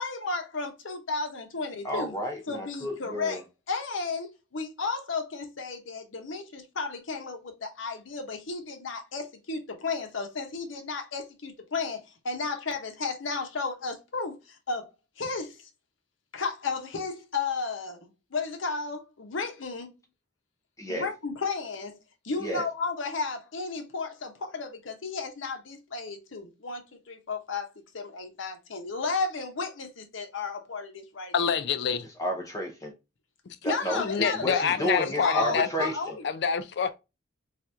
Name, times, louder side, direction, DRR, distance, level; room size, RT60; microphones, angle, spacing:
voice 1, 0.0-2.2 2.5-3.4 3.7-15.7 16.3-20.0 20.9-22.0 22.2-31.3 33.6-36.2, left 4 dB, 90° left, 0.8 m, -33 dB
voice 2, 1.8-3.4 20.8-21.1 22.4-22.6 32.2-32.9 33.6-36.1, equal, 15° left, 0.6 m, -31 dB
voice 3, 31.3-32.1 34.0-35.9 36.2-37.0, left 6 dB, 60° left, 0.4 m, -27 dB
2.9 x 2.4 x 3.2 m
head